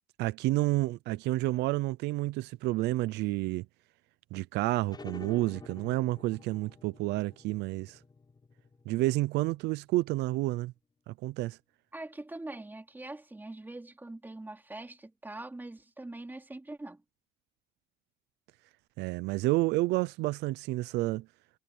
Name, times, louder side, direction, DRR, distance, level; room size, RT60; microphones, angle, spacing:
voice 1, 0.2-3.7 4.3-8.0 8.9-10.7 11.1-11.6 19.0-21.3, right 19 dB, 85° right, 0.6 m, -30 dB
sound 1, 4.9-10.1, left 4 dB, 25° left, 7.7 m, -50 dB
voice 2, 11.9-17.0, right 2 dB, 10° right, 3.2 m, -43 dB
cardioid pair, 110°, 17 cm